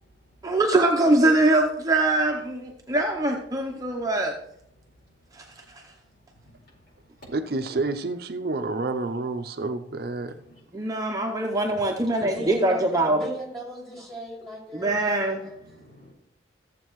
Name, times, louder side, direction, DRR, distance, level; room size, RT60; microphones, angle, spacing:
voice 1, 0.4-4.3 5.3-5.4 10.7-13.2 14.7-15.4, right 2 dB, 20° right, 1 dB, 0.7 m, -23 dB
voice 2, 3.7-4.2 6.3-6.8 10.2-10.6 14.8-14.9 15.4-16.1, left 1 dB, 60° left, -4 dB, 4.6 m, -55 dB
voice 3, 7.3-10.4, right 3 dB, 55° right, 8 dB, 0.5 m, -29 dB
voice 4, 12.2-15.5, equal, 5° left, -4 dB, 3.0 m, -37 dB
14.0 x 7.4 x 3.1 m, 0.75 s
head